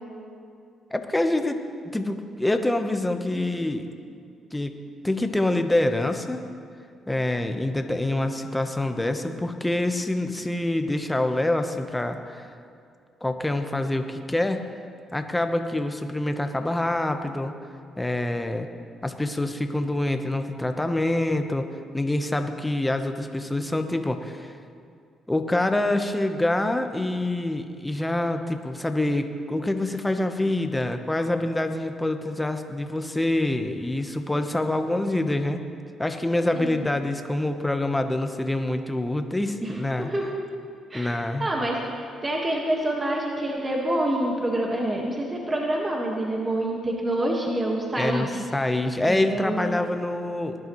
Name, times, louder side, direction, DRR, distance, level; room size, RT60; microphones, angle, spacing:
voice 1, 0.9-1.6 1.9-3.9 4.5-4.8 5.0-6.4 7.1-12.5 13.2-14.6 15.1-17.5 18.0-18.7 19.0-21.7 21.9-24.5 25.3-35.6 36.0-40.1 40.9-41.5 48.0-50.6, left 1 dB, 10° left, 6 dB, 1.0 m, -26 dB
voice 2, 36.5-36.9 39.6-40.3 40.9-41.1 41.4-48.4 49.1-49.8, right 1 dB, 25° right, -1 dB, 1.6 m, -27 dB
19.5 x 11.0 x 3.1 m, 2.4 s
cardioid pair, 90°, 0 cm